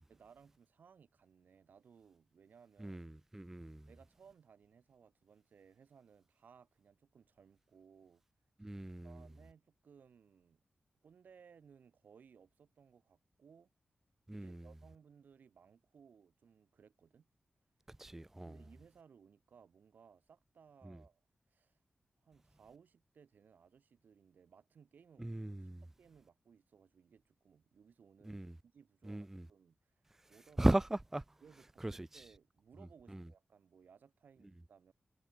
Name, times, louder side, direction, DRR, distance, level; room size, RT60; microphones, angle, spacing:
voice 1, 0.1-3.0 3.9-8.2 8.6-8.7 9.0-10.6 11.0-13.7 14.4-17.3 18.5-21.2 21.5-21.8 22.2-30.0 30.3-30.7 31.4-34.9, right 6 dB, 85° right, 4.8 m, -63 dB
voice 2, 2.8-3.9 8.6-9.2 14.3-14.7 17.9-18.6 20.8-21.0 25.2-25.8 28.2-28.6 29.1-29.5 30.6-31.2 31.8-32.2 33.1-33.2, right 1 dB, 10° right, 0.4 m, -37 dB
wide cardioid pair, 120°, 3 cm